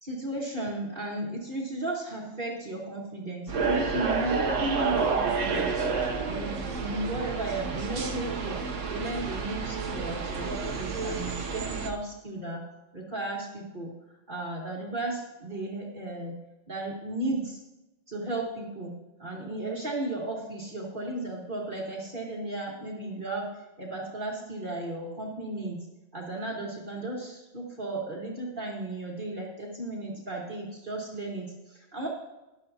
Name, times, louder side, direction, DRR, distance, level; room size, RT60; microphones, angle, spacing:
voice 1, 0.0-12.6 12.9-16.3 16.7-17.6 18.1-18.9 19.2-25.9 26.1-32.1, right 2 dB, 45° right, -2 dB, 1.7 m, -35 dB
sound 1, 3.5-11.9, right 4 dB, 85° right, 1.3 m, -30 dB
13.0 x 10.5 x 2.8 m, 1.0 s
omnidirectional pair, 1.2 m